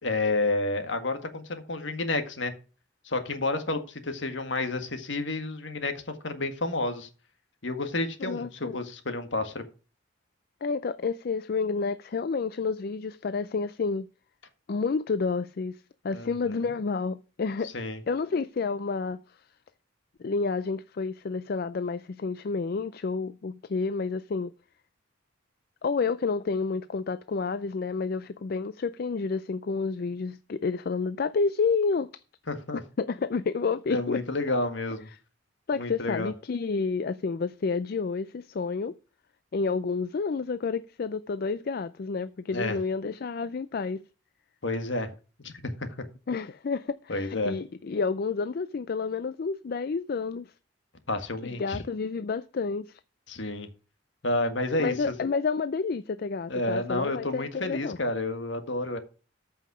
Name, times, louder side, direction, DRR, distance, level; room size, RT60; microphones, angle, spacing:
voice 1, 0.0-2.5 3.0-7.1 7.6-9.6 16.1-16.3 17.7-18.0 32.5-32.8 33.9-35.1 35.8-36.3 42.5-42.8 44.6-45.1 45.4-45.7 47.1-47.5 51.1-51.8 53.3-53.7 54.2-54.9 56.5-59.0, left 2 dB, 65° left, 1.7 m, -30 dB
voice 2, 8.2-8.8 10.6-14.1 14.7-17.7 18.1-19.4 20.2-24.5 25.8-32.2 33.0-34.2 35.7-38.9 39.5-44.0 46.3-50.5 51.4-53.0 54.8-58.0, left 4 dB, 50° left, 0.4 m, -30 dB
14.0 x 5.6 x 4.9 m
head